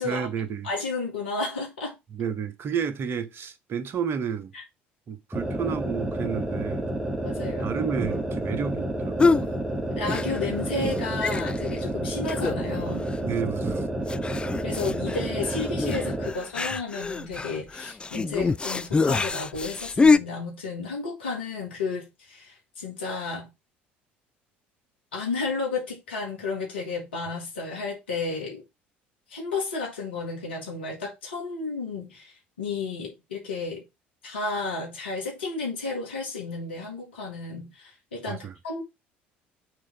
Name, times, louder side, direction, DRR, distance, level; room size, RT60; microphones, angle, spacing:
voice 1, 0.0-0.7 2.1-4.5 5.1-6.9 7.6-9.4 13.2-13.8 38.3-38.5, right 7 dB, 45° right, 1.0 m, -31 dB
voice 2, 0.6-2.0 4.5-4.6 7.2-7.7 9.9-13.1 14.6-23.5 25.1-28.6 29.3-33.9 34.2-38.8, left 4 dB, 85° left, 2.1 m, -32 dB
sound 1, 5.3-16.4, right 1 dB, 10° right, 1.6 m, -30 dB
sound 2, 9.2-9.5 10.0-10.6 10.8-10.9 11.2-11.8 12.3-12.8 13.1-13.2 14.1-20.2, left 4 dB, 15° left, 0.4 m, -25 dB
6.5 x 3.7 x 5.1 m
hypercardioid pair, 60°, 6 cm